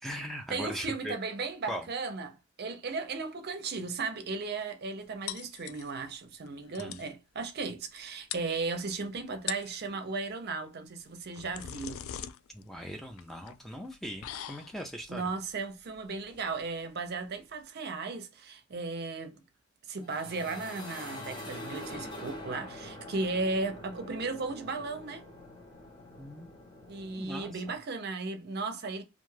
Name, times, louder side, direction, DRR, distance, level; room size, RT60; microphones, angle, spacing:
voice 1, 0.0-1.2 1.7-1.8 6.8-7.0 12.5-15.3 26.2-26.5 27.2-27.6, equal, ahead, 0.3 m, -40 dB
voice 2, 0.5-12.0 15.1-19.4 19.9-25.2 26.9-29.0, right 3 dB, 50° right, 0.5 m, -36 dB
sound 1, 5.3-6.1 6.5-6.6 6.7-7.1 8.0-8.1 8.3-9.0 9.3-9.8 11.0-17.6, left 10 dB, 90° left, 0.3 m, -43 dB
sound 2, 20.0-27.8, left 1 dB, 20° left, 0.8 m, -45 dB
2.4 x 2.3 x 3.1 m
head